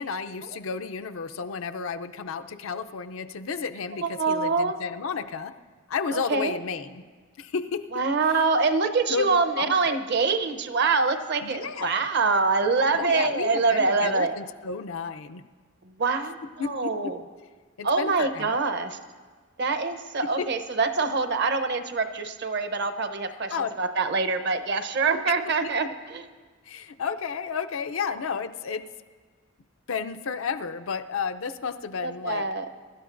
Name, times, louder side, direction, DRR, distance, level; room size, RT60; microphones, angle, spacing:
voice 1, 0.0-5.5 5.9-7.0 7.4-7.9 9.1-10.0 11.4-12.0 12.9-15.4 16.6-17.1 17.8-18.6 20.4-20.5 23.5-23.7 25.6-25.7 26.7-28.9 29.9-32.4, left 5 dB, 80° left, 8 dB, 0.5 m, -32 dB
voice 2, 4.0-4.7 6.1-6.6 7.9-14.3 15.8-17.2 17.8-19.0 19.6-26.3 32.0-32.7, right 4 dB, 55° right, 10 dB, 0.8 m, -25 dB
23.5 x 12.5 x 2.6 m, 1.5 s
head